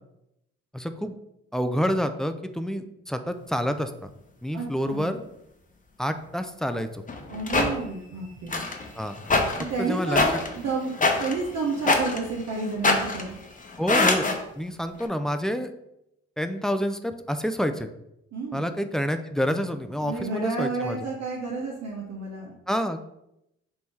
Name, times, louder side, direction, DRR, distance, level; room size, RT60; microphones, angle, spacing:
voice 1, 0.7-1.1 1.5-4.1 4.4-5.2 6.0-7.0 9.0-9.1 9.8-10.3 13.8-14.3 14.6-15.7 16.4-17.9 18.5-21.0 22.7-23.1, equal, ahead, 8 dB, 0.3 m, -28 dB
voice 2, 4.5-5.2 7.3-8.6 9.6-13.4 18.3-18.8 20.0-22.5, right 4 dB, 65° right, -2 dB, 0.8 m, -31 dB
sound 1, 7.1-7.7 8.5-14.4 15.0-15.1, left 3 dB, 25° left, 0.8 m, -24 dB
3.5 x 2.7 x 4.5 m, 0.83 s
supercardioid pair, 55°, 30 cm